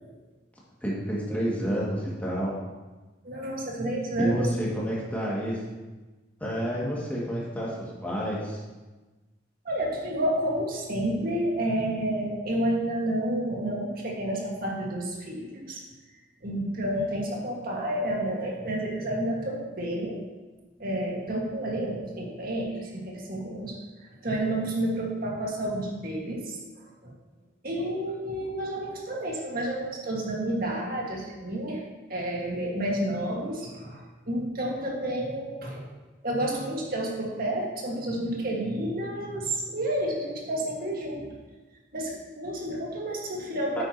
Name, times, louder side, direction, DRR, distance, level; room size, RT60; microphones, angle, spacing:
voice 1, 0.8-2.5 4.2-5.6 6.4-8.6 43.8-43.9, equal, 10° left, -6 dB, 2.2 m, -29 dB
voice 2, 3.2-4.3 9.6-15.8 16.4-20.2 20.8-27.1 27.6-31.8 32.1-35.9 36.2-41.3 41.9-43.8, right 1 dB, 50° right, -2 dB, 1.9 m, -30 dB
9.5 x 8.8 x 3.0 m, 1.2 s
head